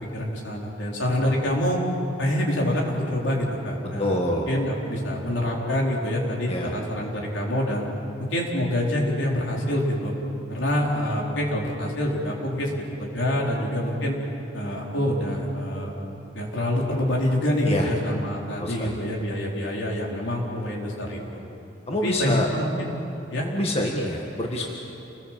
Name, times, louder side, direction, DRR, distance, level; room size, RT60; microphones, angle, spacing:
voice 1, 0.1-1.8 2.2-7.9 8.2-10.1 10.5-12.7 13.0-14.2 14.5-16.0 16.3-21.2 22.0-22.9 23.3-23.5, left 1 dB, 75° left, -2 dB, 4.4 m, -26 dB
voice 2, 4.0-4.5 6.5-6.7 17.7-17.9 18.6-19.0 21.9-22.5 23.4-24.7, left 1 dB, 30° left, 0 dB, 1.8 m, -26 dB
28.5 x 20.5 x 7.6 m, 2.9 s
head